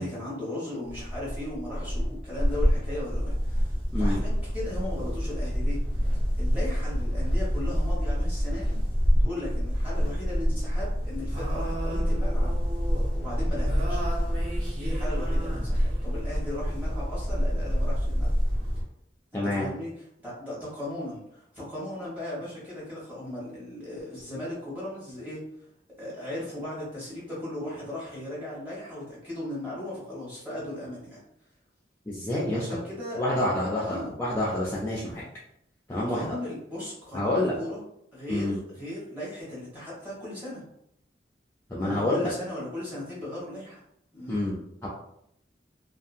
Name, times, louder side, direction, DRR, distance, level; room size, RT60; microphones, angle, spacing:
voice 1, 0.0-5.8 6.4-8.8 9.2-12.5 13.2-14.1 14.8-18.3 19.3-25.4 26.0-31.2 32.5-33.2 33.8-34.1 36.1-37.8 38.1-40.6 41.8-43.8 44.1-44.4, left 1 dB, 10° right, -8 dB, 1.1 m, -37 dB
sound 1, 0.9-18.8, equal, 70° right, 1.1 m, -27 dB
voice 2, 19.3-19.7 32.1-32.7 33.2-35.2 35.9-36.4 37.1-37.6 38.3-38.6 41.7-42.3 44.3-44.5 44.8-44.9, left 1 dB, 15° left, -6 dB, 0.4 m, -27 dB
2.7 x 2.4 x 2.6 m, 0.75 s
head